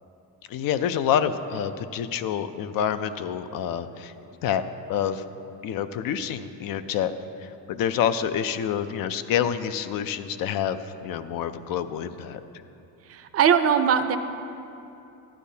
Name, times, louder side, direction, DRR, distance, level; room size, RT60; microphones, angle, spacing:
voice 1, 0.5-4.1 4.4-4.6 4.9-5.2 5.6-7.1 7.4-12.4, left 9 dB, 65° left, 11 dB, 0.5 m, -27 dB
voice 2, 13.1-14.2, right 8 dB, 40° right, 9 dB, 0.5 m, -20 dB
12.0 x 10.0 x 2.8 m, 2.7 s
cardioid pair, 125°, 38 cm